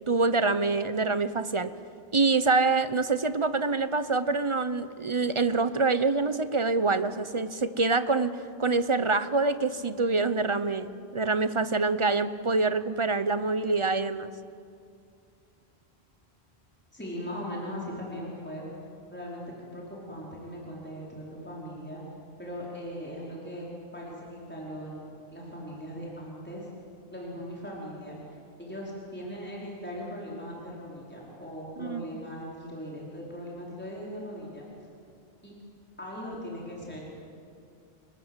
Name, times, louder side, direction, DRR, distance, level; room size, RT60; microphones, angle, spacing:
voice 1, 0.1-1.7 2.1-14.3 31.8-32.0, right 3 dB, 30° right, 12 dB, 0.9 m, -26 dB
voice 2, 16.9-18.7 19.1-19.4 19.7-22.0 22.4-23.7 23.9-26.7 27.1-28.2 28.6-34.6 35.4-35.5 36.0-37.1, equal, 10° left, -5 dB, 5.0 m, -39 dB
30.0 x 20.0 x 8.2 m, 2.4 s
omnidirectional pair, 1.1 m